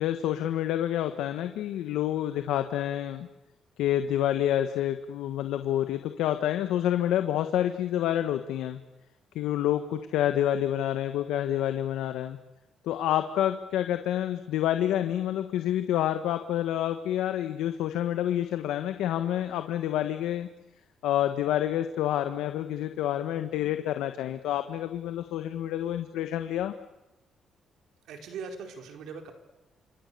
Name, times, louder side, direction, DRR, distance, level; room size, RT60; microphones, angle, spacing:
voice 1, 0.0-3.3 3.8-8.8 9.3-12.4 12.8-20.5 21.0-26.7, left 11 dB, 90° left, 8 dB, 1.5 m, -28 dB
voice 2, 28.1-29.3, right 5 dB, 80° right, 5 dB, 4.4 m, -40 dB
28.0 x 26.0 x 6.9 m, 0.99 s
cardioid pair, 90°, 0 cm